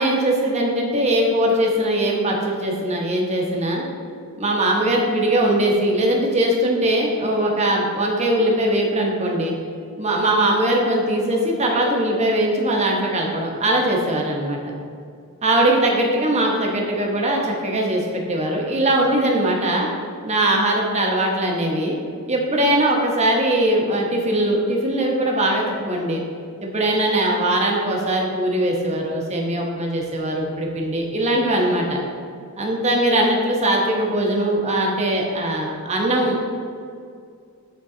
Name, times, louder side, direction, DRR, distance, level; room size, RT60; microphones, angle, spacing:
voice 1, 0.0-3.8 4.4-9.5 10.0-14.6 15.4-19.9 20.2-22.0 22.3-26.2 26.6-32.0 32.6-36.4, right 1 dB, 30° right, -1 dB, 1.0 m, -21 dB
8.6 x 3.8 x 3.8 m, 2.3 s
head